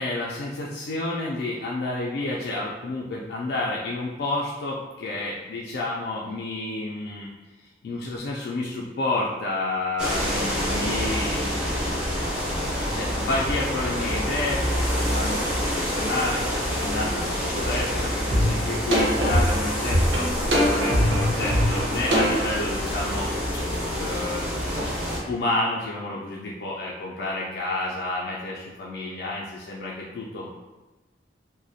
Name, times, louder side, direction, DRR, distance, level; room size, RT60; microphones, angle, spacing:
voice 1, 0.0-7.3 7.8-11.9 12.9-23.6 24.0-24.4 25.3-30.5, left 2 dB, 60° left, -4 dB, 0.3 m, -30 dB
sound 1, 10.0-25.2, equal, 5° right, 0.5 m, -27 dB
sound 2, 18.3-18.4 18.9-22.5, equal, 85° right, 0.6 m, -22 dB
2.4 x 2.0 x 2.6 m, 1.2 s
head